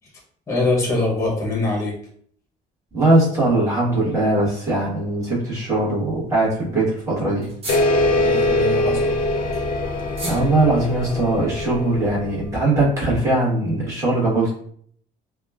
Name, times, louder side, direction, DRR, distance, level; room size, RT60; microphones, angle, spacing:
voice 1, 0.5-1.9 8.1-9.1, left 2 dB, 15° left, -2 dB, 0.8 m, -23 dB
voice 2, 2.9-7.5 10.2-14.5, right 2 dB, 20° right, -8 dB, 1.4 m, -20 dB
sound 1, 5.5-5.9 6.2-6.3 6.5-6.6 6.8-6.9 7.4-8.3 8.9-11.1, right 1 dB, 35° right, 1.0 m, -36 dB
sound 2, 7.7-12.8, left 2 dB, 55° left, 0.4 m, -22 dB
2.8 x 2.2 x 2.3 m, 0.62 s
cardioid pair, 110°, 17 cm